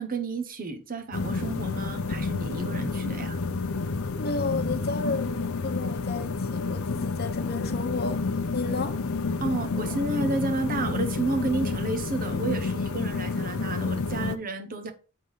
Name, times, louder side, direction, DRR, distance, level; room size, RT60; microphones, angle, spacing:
voice 1, 0.0-3.4 9.4-14.9, right 3 dB, 40° right, 0.9 m, -31 dB
sound 1, 1.1-14.4, left 4 dB, 85° left, 0.7 m, -29 dB
voice 2, 4.2-8.2 8.5-9.0, left 3 dB, 50° left, 1.0 m, -32 dB
7.9 x 3.7 x 5.4 m
head